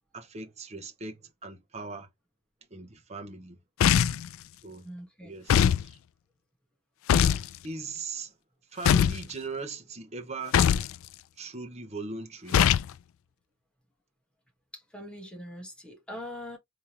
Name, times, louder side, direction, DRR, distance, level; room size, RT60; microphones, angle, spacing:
voice 1, 0.1-2.1 2.7-3.6 4.6-4.9 5.2-6.0 7.6-8.3 8.7-10.6 11.4-12.7, right 3 dB, 30° right, 1.0 m, -39 dB
sound 1, 3.8-4.3 5.5-5.8 7.1-7.5 8.9-9.2 10.5-10.9 12.5-12.9, left 9 dB, 65° left, 0.3 m, -21 dB
voice 2, 4.8-5.3 14.7-16.6, left 1 dB, 5° left, 1.3 m, -42 dB
3.6 x 2.9 x 3.0 m
head